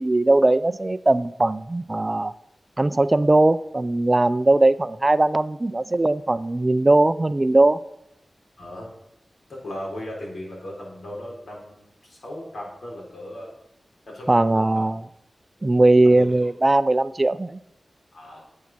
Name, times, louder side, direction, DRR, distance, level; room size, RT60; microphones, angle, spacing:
voice 1, 0.0-2.3 2.8-7.8 14.3-15.0 15.6-17.6, right 2 dB, 30° right, 14 dB, 0.4 m, -19 dB
voice 2, 8.6-8.9 9.5-13.5 14.1-14.9 16.0-16.5 18.1-18.4, left 1 dB, 75° left, -2 dB, 4.4 m, -37 dB
9.3 x 8.4 x 6.0 m, 0.82 s
wide cardioid pair, 85°, 0 cm